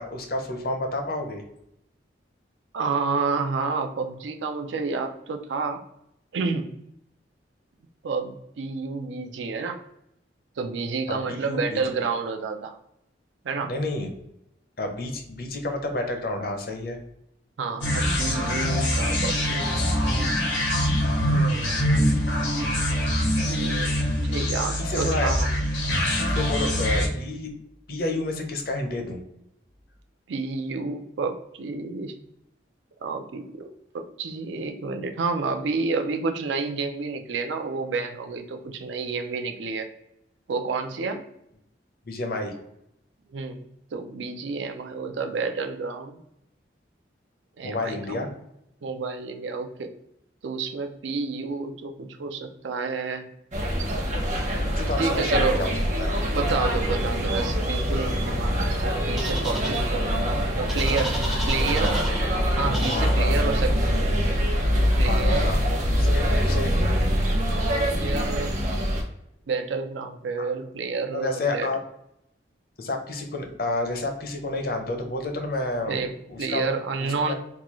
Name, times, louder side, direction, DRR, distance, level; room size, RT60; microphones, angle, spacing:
voice 1, 0.0-1.4 11.1-11.2 11.5-11.8 13.7-14.1 14.8-17.0 24.8-25.3 26.1-27.5 27.9-29.2 42.1-42.5 47.6-48.3 54.8-55.7 56.0-56.1 62.3-62.5 62.9-63.5 65.0-65.6 65.9-66.7 70.4-70.5 71.1-71.8 72.8-76.0 76.3-76.7 77.0-77.3, left 2 dB, 55° left, 4 dB, 0.6 m, -30 dB
voice 2, 2.7-5.8 6.3-6.7 8.0-9.8 10.6-12.8 13.4-13.8 17.6-20.4 21.2-22.3 23.4-25.5 30.3-32.1 33.0-39.9 40.5-41.2 43.3-46.2 47.6-48.3 48.8-49.9 50.4-53.3 55.0-56.0 56.3-61.2 61.5-62.0 62.6-64.0 65.0-65.6 67.7-68.6 69.5-71.7 75.9-76.1 76.4-77.3, right 4 dB, 85° right, 6 dB, 0.4 m, -30 dB
sound 1, 17.8-27.1, equal, 85° left, 1.0 m, -24 dB
sound 2, 53.5-69.0, equal, 40° right, 0.8 m, -24 dB
sound 3, 59.2-59.8 60.7-62.2 62.7-63.1, equal, ahead, 0.4 m, -33 dB
3.7 x 2.3 x 2.9 m, 0.80 s
head